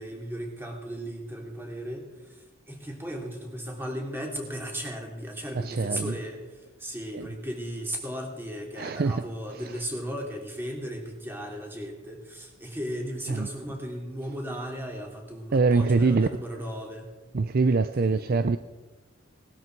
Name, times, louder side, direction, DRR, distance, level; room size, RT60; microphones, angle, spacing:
voice 1, 0.0-17.2 17.8-18.5, equal, 10° right, 0 dB, 2.9 m, -36 dB
voice 2, 5.5-6.1 7.1-7.3 8.8-9.7 13.3-13.5 15.5-16.3 17.3-18.6, right 4 dB, 45° right, 11 dB, 0.5 m, -24 dB
19.5 x 12.5 x 4.7 m, 1.1 s
head